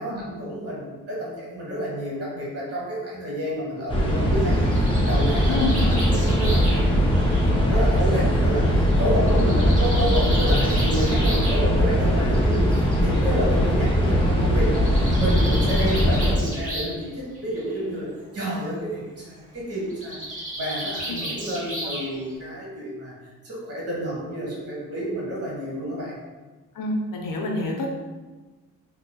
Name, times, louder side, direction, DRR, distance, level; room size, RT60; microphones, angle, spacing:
voice 1, 0.0-18.1 18.3-23.1 23.4-26.2, equal, 50° right, -5 dB, 1.2 m, -30 dB
sound 1, 3.9-16.3, equal, 15° left, 0.5 m, -20 dB
Bird, 4.4-8.2 9.3-11.6 12.7-12.8 13.2-13.3 13.5-13.6 14.6-17.0 17.3-17.8 19.9-22.3, right 1 dB, 25° right, 0.8 m, -34 dB
voice 2, 5.5-5.8 9.2-9.5 12.2-12.3 21.1-21.2 26.7-27.9, left 2 dB, 80° left, 1 dB, 0.7 m, -28 dB
4.1 x 2.8 x 2.2 m, 1.2 s
wide cardioid pair, 175°, 32 cm